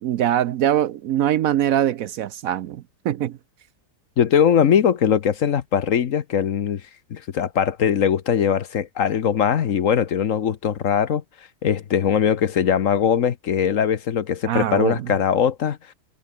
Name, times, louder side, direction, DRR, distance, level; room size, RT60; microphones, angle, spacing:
voice 1, 0.0-3.4 14.5-15.1, right 11 dB, 65° right, 1.0 m, -23 dB
voice 2, 4.2-6.8 7.1-11.2 11.6-15.8, left 8 dB, 55° left, 1.2 m, -20 dB
omnidirectional pair, 1.7 m